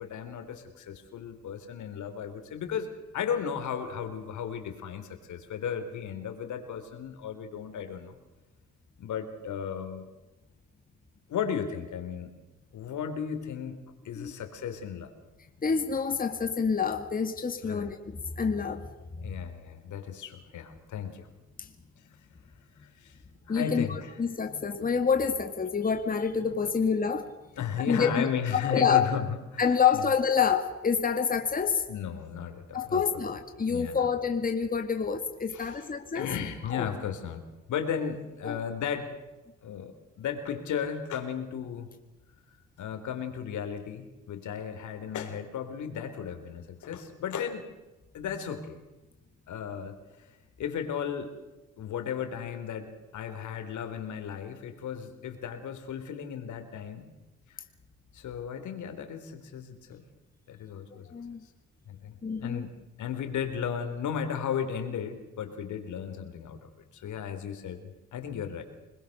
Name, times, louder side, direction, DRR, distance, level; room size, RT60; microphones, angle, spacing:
voice 1, 0.0-8.2 9.0-10.1 11.3-12.3 12.7-13.8 14.1-15.1 17.6-17.9 19.2-21.3 22.8-23.2 23.5-24.1 27.6-29.3 29.5-29.6 29.9-30.1 31.9-33.0 33.7-34.0 35.5-35.8 36.1-37.4 37.7-39.1 39.6-41.9 42.8-47.7 48.1-48.8 49.5-49.9 50.6-51.3 51.8-57.1 58.1-60.0 60.5-61.1 61.9-62.1 62.4-66.6 66.9-68.6, left 7 dB, 75° left, 7 dB, 3.6 m, -35 dB
voice 2, 15.6-18.9 21.6-21.7 23.5-27.3 27.9-28.3 28.6-29.1 29.6-31.8 32.7-36.3 36.6-36.9 38.4-38.6 61.1-61.4 62.2-62.7, left 6 dB, 30° left, 6 dB, 2.0 m, -27 dB
25.5 x 21.0 x 6.6 m, 1.1 s
cardioid pair, 90°, 30 cm